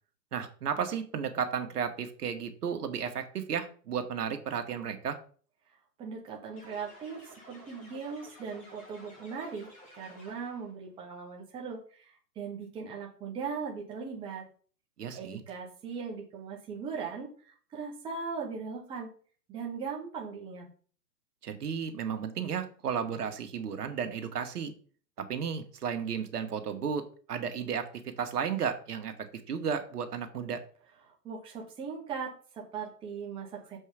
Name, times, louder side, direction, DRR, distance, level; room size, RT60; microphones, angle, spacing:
voice 1, 0.3-5.2 15.0-15.4 21.4-24.7 25.2-30.6, right 7 dB, 65° right, 6 dB, 1.8 m, -33 dB
voice 2, 6.0-9.7 10.0-14.5 15.1-19.1 19.5-20.7 31.1-33.8, right 5 dB, 10° right, -2 dB, 1.1 m, -39 dB
sound 1, 6.6-10.7, equal, 15° left, 2.9 m, -53 dB
7.1 x 5.3 x 5.0 m, 0.44 s
hypercardioid pair, 150°, 49 cm